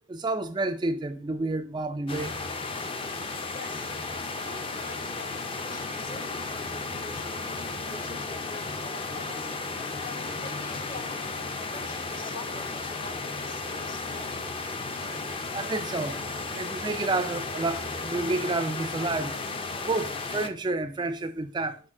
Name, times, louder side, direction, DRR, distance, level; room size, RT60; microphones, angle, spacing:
voice 1, 0.1-2.3 15.5-16.2 16.5-19.3 19.8-21.8, right 2 dB, 20° right, 0.3 m, -30 dB
sound 1, 2.1-20.5, left 3 dB, 25° left, 0.5 m, -34 dB
voice 2, 3.5-3.9 4.4-9.6 10.0-11.2 11.6-14.4, left 2 dB, 40° left, 1.0 m, -46 dB
6.3 x 4.6 x 3.6 m
head